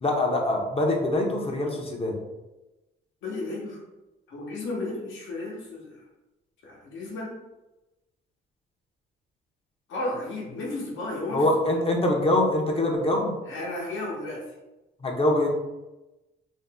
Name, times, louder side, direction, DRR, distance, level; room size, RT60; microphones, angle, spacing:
voice 1, 0.0-2.2 11.3-13.3 15.0-15.5, left 1 dB, 30° left, 1 dB, 0.6 m, -24 dB
voice 2, 3.2-3.8 4.3-6.0 6.6-7.4 9.9-11.8 13.4-14.5, left 2 dB, 75° left, -3 dB, 0.9 m, -33 dB
2.6 x 2.0 x 3.5 m, 1.0 s
cardioid pair, 90°, 20 cm